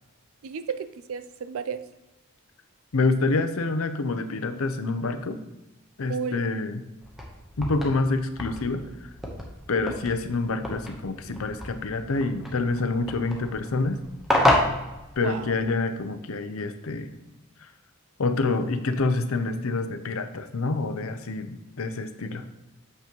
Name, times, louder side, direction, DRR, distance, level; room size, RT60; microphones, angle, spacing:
voice 1, 0.4-1.8 6.1-6.4 9.7-9.9 15.2-15.5, right 6 dB, 65° right, 12 dB, 0.4 m, -33 dB
voice 2, 2.9-5.4 6.0-6.8 7.6-9.1 9.7-14.0 15.2-17.1 18.2-22.4, left 3 dB, 70° left, 9 dB, 0.6 m, -27 dB
sound 1, 7.0-15.7, left 1 dB, ahead, 0.9 m, -30 dB
6.7 x 5.7 x 3.0 m, 1.0 s
head